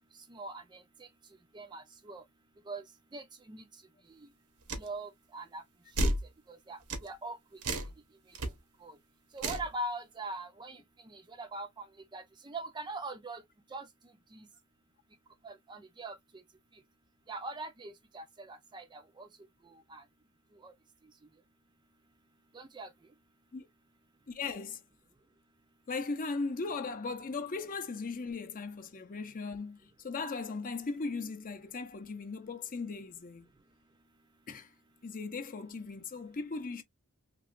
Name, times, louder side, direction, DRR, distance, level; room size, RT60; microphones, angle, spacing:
voice 1, 0.3-1.1 1.5-2.2 2.7-2.8 3.1-3.6 4.2-4.3 4.8-5.6 6.0-6.1 6.5-7.4 8.8-9.0 9.3-11.9 12.1-13.4 13.7-13.9 14.3-14.5 15.4-16.2 17.3-19.3 19.7-20.0 20.6-20.7 22.5-22.9, right 2 dB, 20° right, 0.4 m, -42 dB
sound 1, 4.7-4.9 6.0-6.3 6.9-7.1 7.6-7.9 8.4-8.5 9.4-9.7, right 1 dB, 90° right, 0.9 m, -31 dB
voice 2, 24.3-24.8 25.9-33.5 34.5-34.7 35.0-36.8, left 4 dB, 40° left, 0.6 m, -38 dB
3.0 x 2.9 x 2.4 m
head